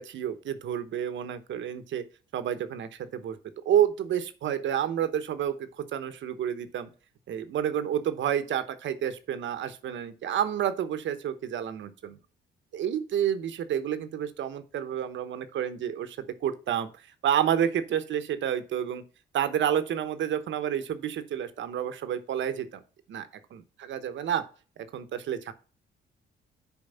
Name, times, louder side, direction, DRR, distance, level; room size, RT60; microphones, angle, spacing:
voice 1, 0.0-2.0 2.3-3.4 3.6-6.9 7.3-12.2 12.7-19.0 19.3-22.8 23.1-23.3 23.9-24.4 24.9-25.5, right 9 dB, 70° right, 11 dB, 1.0 m, -29 dB
7.1 x 4.6 x 5.5 m, 0.37 s
cardioid pair, 90°, 20 cm